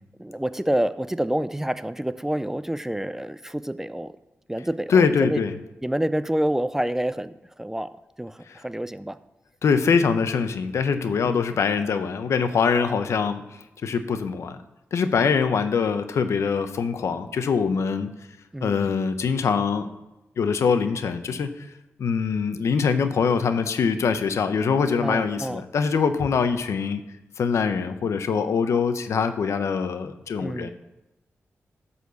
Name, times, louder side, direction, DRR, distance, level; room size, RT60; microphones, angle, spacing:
voice 1, 0.2-4.1 4.5-5.4 5.8-7.9 8.2-9.2 11.2-11.6 18.5-18.9 25.0-25.6 30.4-30.7, right 1 dB, 10° right, 14 dB, 0.4 m, -28 dB
voice 2, 4.9-5.5 8.5-8.6 9.6-14.6 14.9-18.1 18.6-19.9 20.4-21.7 22.0-27.0 27.4-30.7, left 5 dB, 75° left, 10 dB, 0.7 m, -23 dB
11.5 x 4.3 x 6.9 m, 0.97 s
cardioid pair, 90°, 5 cm